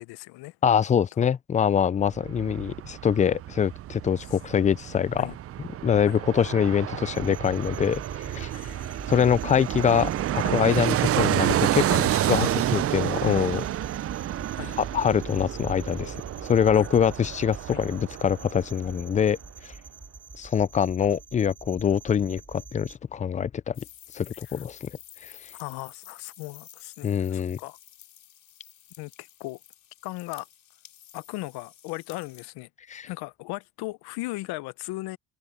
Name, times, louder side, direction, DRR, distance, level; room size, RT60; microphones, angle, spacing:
voice 1, 0.0-0.6 1.2-1.3 5.2-5.4 6.1-6.2 8.5-9.0 10.4-10.6 11.9-12.0 12.4-12.6 14.6-14.7 16.8-16.9 17.7-17.8 24.6-24.7 25.6-27.8 29.0-29.6 30.0-30.5 31.1-32.7 33.0-35.2, left 20 dB, 75° left, 0.8 m, -37 dB
voice 2, 0.6-5.3 5.8-8.5 9.1-13.6 14.8-16.1 16.4-19.4 19.6-19.7 20.4-23.8 24.1-24.9 25.2-25.3 27.0-27.6 32.9-33.1, left 8 dB, 20° left, 0.3 m, -24 dB
Fixed-wing aircraft airplane, 2.0-19.0 19.3-19.4, right 12 dB, 40° right, 0.5 m, -29 dB
sound 1, 7.1-23.0, right 3 dB, 10° right, 5.5 m, -44 dB
sound 2, 23.7-32.5, left 11 dB, 60° left, 5.8 m, -51 dB
open air
supercardioid pair, 90°, 38 cm